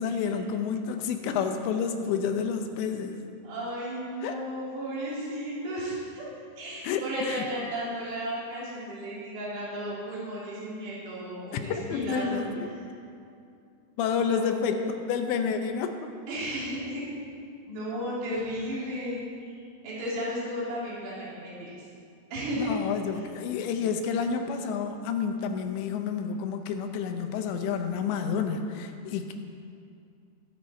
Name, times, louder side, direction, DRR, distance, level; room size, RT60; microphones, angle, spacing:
voice 1, 0.0-3.2 4.2-4.4 6.8-7.5 11.5-12.7 14.0-16.1 22.6-29.3, left 6 dB, 85° left, 6 dB, 3.1 m, -29 dB
voice 2, 3.4-6.2 6.6-12.5 14.1-14.9 16.3-17.0 17.7-19.5 19.8-21.7 22.3-22.7, equal, 75° right, -8 dB, 5.2 m, -34 dB
21.5 x 7.6 x 4.3 m, 2.4 s
omnidirectional pair, 5.1 m